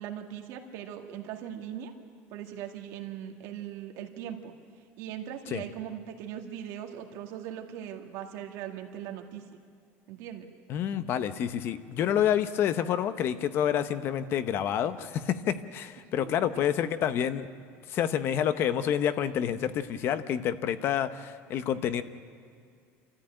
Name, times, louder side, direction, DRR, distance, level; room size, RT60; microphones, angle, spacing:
voice 1, 0.0-1.9 2.3-4.5 5.0-9.4 10.1-10.5 16.2-16.5, right 10 dB, 65° right, 3 dB, 2.1 m, -40 dB
voice 2, 10.7-17.5 17.9-22.0, left 9 dB, 45° left, 12 dB, 0.9 m, -28 dB
26.5 x 14.5 x 8.9 m, 2.3 s
cardioid pair, 160°, 6 cm